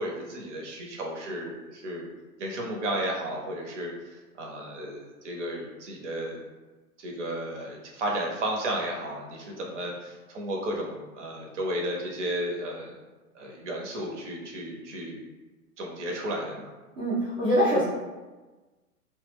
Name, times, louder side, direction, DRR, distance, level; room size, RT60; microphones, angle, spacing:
voice 1, 0.0-2.1 2.4-6.4 7.0-12.9 13.3-15.2 15.8-16.7, right 1 dB, 50° right, -1 dB, 0.7 m, -33 dB
voice 2, 17.0-17.8, equal, 15° right, -15 dB, 0.4 m, -23 dB
2.1 x 2.0 x 3.4 m, 1.2 s
figure-of-eight pair, 110°, 45 cm